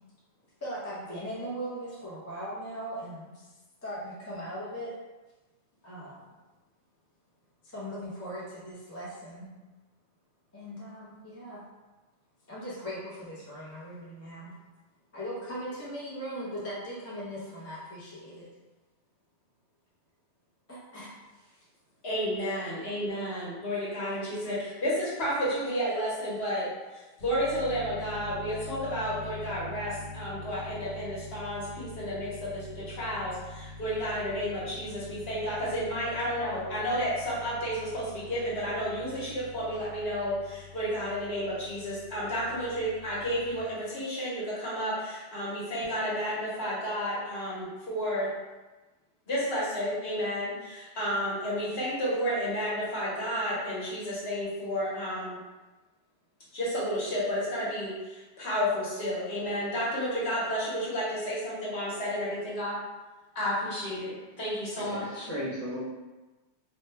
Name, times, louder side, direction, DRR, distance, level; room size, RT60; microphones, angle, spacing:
voice 1, 0.6-3.5 3.8-4.9 5.8-6.2 7.6-9.5 10.5-11.6 12.5-14.5 15.1-18.5 20.7-21.6, equal, 20° left, -8 dB, 0.5 m, -39 dB
voice 2, 22.0-26.7 26.9-48.3 49.3-55.4 56.5-62.8 63.3-65.3, equal, 60° left, -7 dB, 1.2 m, -31 dB
sound 1, 27.2-43.6, left 2 dB, 85° left, 1.1 m, -45 dB
voice 3, 64.8-65.8, equal, 25° right, -10 dB, 0.6 m, -35 dB
2.8 x 2.1 x 3.3 m, 1.1 s
omnidirectional pair, 1.2 m